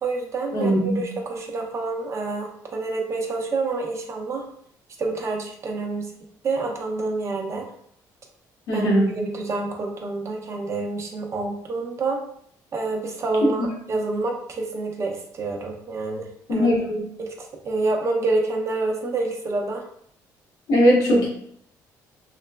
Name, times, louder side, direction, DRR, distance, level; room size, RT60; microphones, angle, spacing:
voice 1, 0.0-4.4 5.0-6.1 6.4-7.7 8.7-12.2 12.7-16.7 17.2-19.9, right 3 dB, 40° right, 1 dB, 0.6 m, -28 dB
voice 2, 0.5-1.0 8.7-9.1 13.4-13.7 16.5-17.1 20.7-21.3, equal, 75° left, -3 dB, 1.1 m, -20 dB
3.1 x 2.1 x 2.3 m, 0.67 s
cardioid pair, 90°, 7 cm